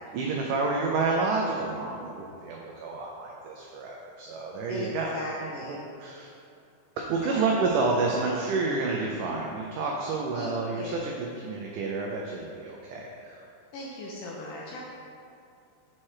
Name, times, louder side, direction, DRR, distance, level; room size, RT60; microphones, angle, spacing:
voice 1, 0.1-5.1 5.4-6.3 7.0-13.4, right 3 dB, 90° right, -1 dB, 1.8 m, -29 dB
voice 2, 4.7-5.8 7.2-7.4 10.3-11.1 13.7-14.8, left 2 dB, 80° left, -3 dB, 1.9 m, -38 dB
7.4 x 4.4 x 4.8 m, 2.5 s
omnidirectional pair, 4.4 m